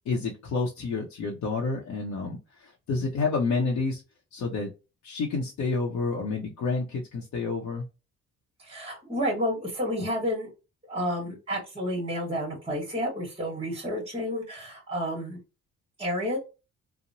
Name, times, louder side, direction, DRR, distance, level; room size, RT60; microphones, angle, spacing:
voice 1, 0.1-4.0 4.3-4.7 5.0-7.8, left 4 dB, 70° left, -2 dB, 0.7 m, -29 dB
voice 2, 8.6-10.5 10.9-15.4 16.0-16.4, equal, 20° right, -2 dB, 1.2 m, -30 dB
2.9 x 2.0 x 2.6 m, 0.28 s
cardioid pair, 90°, 30 cm